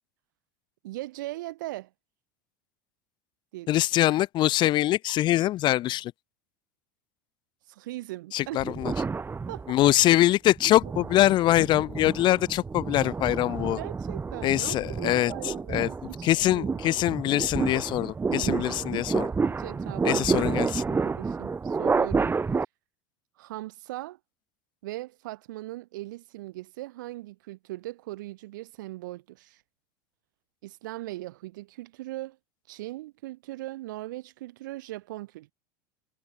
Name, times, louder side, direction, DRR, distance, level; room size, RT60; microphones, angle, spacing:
voice 1, 0.8-1.9 3.5-3.7 7.7-8.7 9.5-9.9 13.8-16.8 18.4-18.7 19.5-20.3 20.9-22.4 23.4-24.2 24.8-29.6 30.6-32.4 32.7-35.5, right 17 dB, 75° right, 2.5 m, -39 dB
voice 2, 3.7-6.1 8.3-8.9 9.7-13.8 14.4-15.9 16.2-19.3 20.0-20.8, left 15 dB, 50° left, 1.1 m, -24 dB
sound 1, 8.6-10.0 10.6-22.6, right 4 dB, 20° right, 2.5 m, -30 dB
hypercardioid pair, 90°, 10 cm